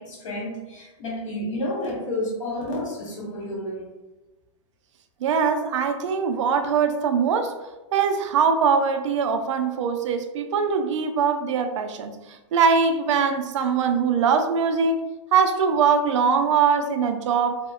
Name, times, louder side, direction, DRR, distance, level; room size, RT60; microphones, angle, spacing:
voice 1, 0.0-3.9, left 1 dB, 85° left, -2 dB, 1.0 m, -30 dB
voice 2, 5.2-7.6 7.9-15.0 15.3-17.6, right 6 dB, 75° right, 6 dB, 0.4 m, -22 dB
2.8 x 2.0 x 2.3 m, 1.1 s
supercardioid pair, 160°, 16 cm